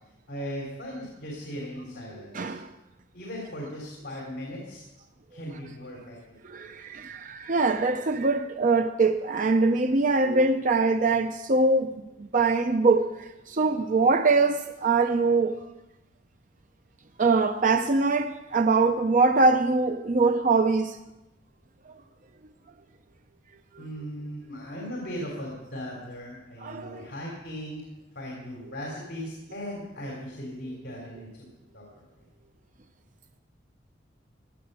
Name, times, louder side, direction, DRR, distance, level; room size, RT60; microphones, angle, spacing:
voice 1, 0.3-2.6 3.1-4.8 5.3-6.2 6.5-6.7 23.8-27.8 28.1-31.3 31.7-31.9, equal, 60° left, 3.5 m, -38 dB
voice 2, 2.3-2.7 6.4-15.6 17.2-21.0 23.7-23.8 26.6-27.1, right 3 dB, 45° right, 0.6 m, -23 dB
16.0 x 9.9 x 6.8 m
head